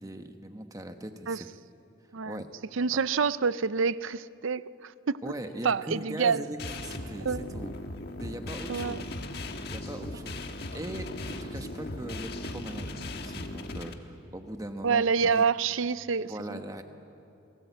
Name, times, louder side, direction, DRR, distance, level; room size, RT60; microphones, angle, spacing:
voice 1, 0.0-1.5 2.3-2.5 2.9-3.0 5.2-7.7 8.2-9.1 9.7-15.1 15.3-15.4 16.2-16.8, right 1 dB, 15° right, 6 dB, 1.1 m, -40 dB
voice 2, 2.7-4.9 5.6-6.4 7.2-7.5 8.7-9.0 14.8-16.6, right 5 dB, 75° right, 17 dB, 0.5 m, -27 dB
sound 1, 6.6-13.9, left 1 dB, 50° left, 1.5 m, -38 dB
29.5 x 19.0 x 8.1 m, 2.8 s
head